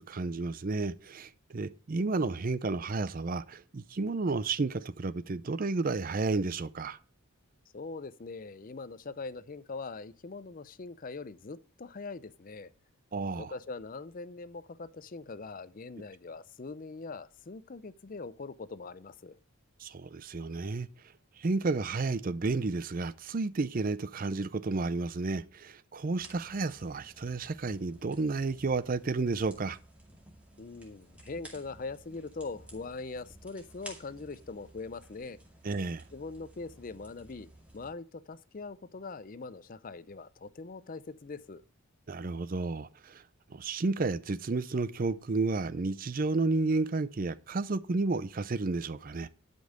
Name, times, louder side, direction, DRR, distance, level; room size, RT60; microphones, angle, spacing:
voice 1, 0.0-7.0 13.1-13.5 19.8-20.9 21.4-29.8 35.6-36.0 42.1-43.2 43.5-49.3, right 3 dB, 40° right, 0.5 m, -31 dB
voice 2, 7.7-12.7 13.3-19.4 30.6-35.4 36.1-37.5 37.7-41.6, left 3 dB, 40° left, 0.5 m, -42 dB
sound 1, 26.1-37.9, right 1 dB, 5° right, 2.2 m, -54 dB
11.5 x 5.3 x 6.5 m
head